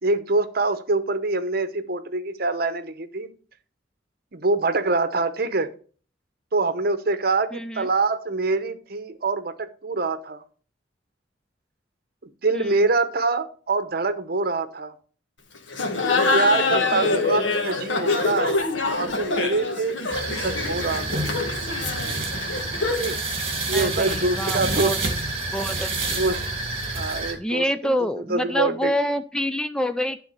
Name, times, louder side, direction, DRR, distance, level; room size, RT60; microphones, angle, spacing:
voice 1, 0.0-3.3 4.3-5.7 6.5-10.4 12.4-14.9 16.3-18.6 18.9-20.0 20.3-21.3 23.0-23.2 23.7-24.9 26.1-26.5 26.9-28.9, right 3 dB, 55° right, 0.9 m, -25 dB
voice 2, 7.5-7.9 12.5-12.7 16.9-17.1 23.7-25.0 25.5-26.2 27.4-30.2, equal, 5° left, 0.3 m, -27 dB
Laughter, 15.7-23.2, left 3 dB, 90° left, 1.5 m, -25 dB
sound 1, 20.1-27.3, right 2 dB, 35° right, 2.2 m, -28 dB
11.5 x 3.8 x 6.6 m
head